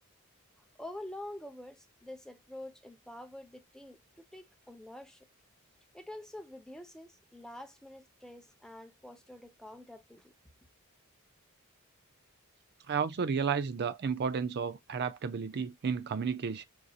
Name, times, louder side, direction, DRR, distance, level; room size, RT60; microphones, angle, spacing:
voice 1, 0.8-5.3 5.9-10.3, left 1 dB, 5° left, 0.6 m, -47 dB
voice 2, 12.9-16.7, right 6 dB, 50° right, 0.4 m, -32 dB
6.1 x 2.7 x 2.3 m
head